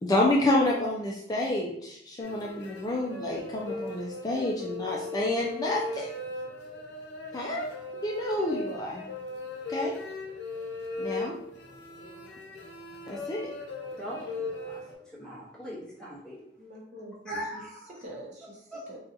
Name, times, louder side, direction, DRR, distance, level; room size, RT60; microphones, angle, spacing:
voice 1, 0.0-6.1 7.3-7.7 8.0-9.1 9.7-10.0 11.0-11.3 13.1-13.5, left 1 dB, 20° left, -3 dB, 0.4 m, -29 dB
sound 1, 2.2-14.9, left 2 dB, 80° left, 0.7 m, -38 dB
voice 2, 14.0-14.8 15.1-16.4 17.3-18.0 18.7-18.8, equal, 5° left, -6 dB, 0.9 m, -40 dB
voice 3, 16.6-17.6 17.9-19.0, right 1 dB, 40° right, -2 dB, 0.7 m, -45 dB
2.7 x 2.3 x 3.7 m, 0.73 s
head